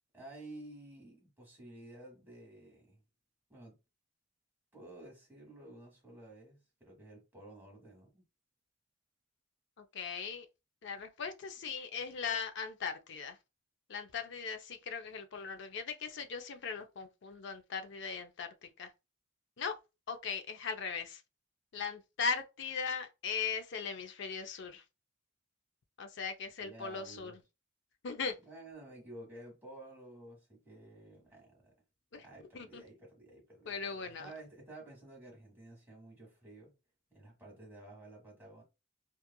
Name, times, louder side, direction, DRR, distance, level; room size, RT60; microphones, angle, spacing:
voice 1, 0.1-3.0 3.5-3.8 4.7-8.2 26.6-27.4 28.5-31.7 32.2-36.7 37.1-38.6, right 2 dB, 10° right, 1.2 m, -52 dB
voice 2, 9.8-10.5 10.8-13.4 13.9-18.9 19.6-19.8 20.1-21.2 21.7-24.8 26.0-27.4 28.0-28.4 32.1-32.2 32.5-32.8 33.7-34.3, left 5 dB, 60° left, 0.5 m, -39 dB
2.9 x 2.4 x 2.2 m
head